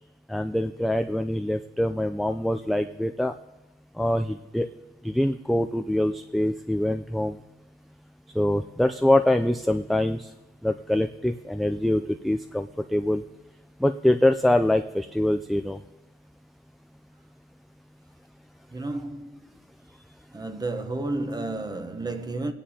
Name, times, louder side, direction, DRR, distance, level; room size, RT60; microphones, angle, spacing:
voice 1, 0.3-3.3 4.0-4.7 5.0-7.4 8.3-10.3 10.6-13.2 13.8-15.8, left 1 dB, ahead, 0.3 m, -24 dB
voice 2, 18.7-19.5 20.3-22.5, right 2 dB, 20° right, 0.9 m, -31 dB
22.5 x 10.0 x 2.8 m
cardioid pair, 90°, 20 cm